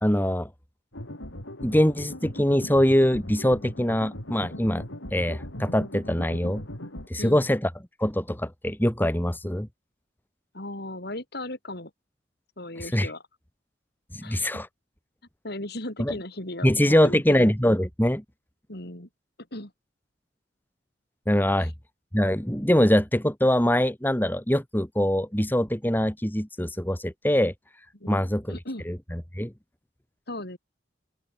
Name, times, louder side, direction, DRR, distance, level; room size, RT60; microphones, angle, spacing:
voice 1, 0.0-0.5 1.6-4.9 5.1-6.6 7.1-7.7 8.0-9.7 12.8-13.1 14.1-14.7 16.0-16.1 16.6-18.2 21.3-21.7 22.1-27.5 28.1-28.6 28.9-29.5, equal, 10° left, 2.1 m, -23 dB
sound 1, 0.9-7.1, left 1 dB, 85° left, 6.4 m, -39 dB
voice 2, 10.5-11.9 12.6-13.2 14.2-14.5 15.4-16.7 17.0-17.5 18.7-19.1 19.5-19.7 21.6-21.7 27.9-28.9 30.3-30.6, left 1 dB, 55° left, 5.9 m, -36 dB
open air
head